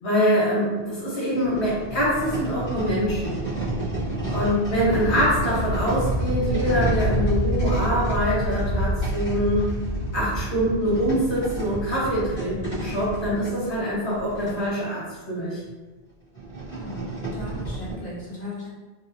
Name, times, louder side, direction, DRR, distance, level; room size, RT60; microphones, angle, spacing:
voice 1, 0.0-3.4 4.3-9.7 10.1-15.6, equal, 65° left, -8 dB, 1.3 m, -24 dB
sound 1, 0.8-0.9 1.3-14.7 15.3-15.4 15.7-15.8 16.3-17.9, right 1 dB, 25° left, 1.1 m, -28 dB
voice 2, 16.7-18.7, left 1 dB, 45° left, -8 dB, 1.2 m, -37 dB
2.8 x 2.8 x 2.8 m, 1.2 s
omnidirectional pair, 1.1 m